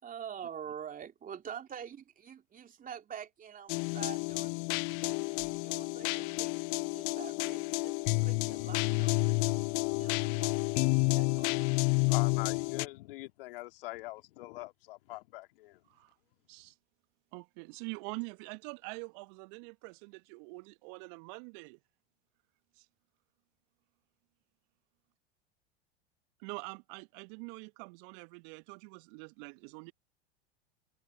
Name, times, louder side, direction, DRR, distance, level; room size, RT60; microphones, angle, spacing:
voice 1, 0.0-4.5 4.9-8.0 8.2-11.8, right 8 dB, 25° right, 3.1 m, -46 dB
sound 1, 3.7-12.9, left 39 dB, 40° left, 0.5 m, -30 dB
voice 2, 11.7-15.8, left 19 dB, 60° left, 2.4 m, -43 dB
voice 3, 17.3-21.8 22.8-22.9 26.4-29.9, right 34 dB, 50° right, 1.5 m, -45 dB
figure-of-eight pair, 85°, 32 cm